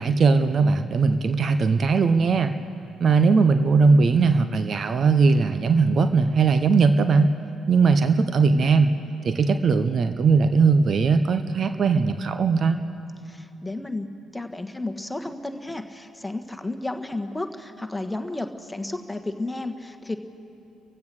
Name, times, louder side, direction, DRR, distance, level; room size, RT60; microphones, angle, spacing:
voice 1, 0.0-2.5 3.0-7.3 7.7-8.9 9.2-12.8, right 4 dB, 50° right, 10 dB, 0.9 m, -19 dB
voice 2, 13.3-14.1 14.3-20.2, left 2 dB, 10° left, 7 dB, 1.6 m, -32 dB
29.0 x 15.5 x 6.5 m, 2.9 s
hypercardioid pair, 45°, 0 cm